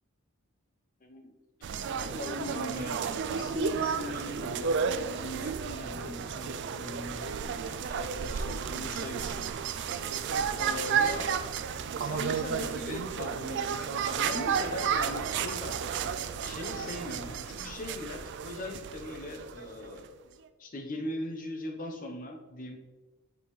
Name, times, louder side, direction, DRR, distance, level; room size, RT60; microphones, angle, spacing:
voice 1, 1.0-1.3 1.6-1.7 2.0-4.8 5.1-9.4 10.5-11.4 11.9-16.1 16.4-20.1 20.6-22.8, left 2 dB, 40° left, 3 dB, 0.8 m, -40 dB
sound 1, 1.6-20.1, right 6 dB, 55° right, 0.3 m, -32 dB
6.9 x 5.5 x 3.2 m, 1.2 s
head